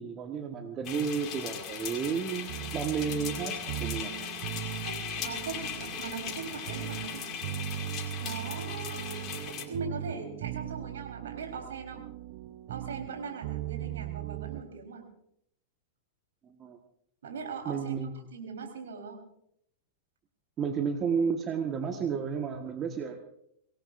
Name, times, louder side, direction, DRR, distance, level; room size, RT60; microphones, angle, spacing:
voice 1, 0.0-3.5 3.8-4.1 16.4-16.8 17.6-18.1 20.6-23.2, right 6 dB, 30° right, 4 dB, 1.5 m, -32 dB
sound 1, 0.8-9.6, left 8 dB, 35° left, 2.3 m, -38 dB
sound 2, 2.5-14.6, right 12 dB, 50° right, 0.9 m, -39 dB
voice 2, 4.8-7.4 8.2-12.0 12.7-15.1 17.2-17.9 18.3-19.2, right 5 dB, 70° right, 2 dB, 4.1 m, -40 dB
24.5 x 18.0 x 2.6 m, 0.73 s
figure-of-eight pair, 95°, 0 cm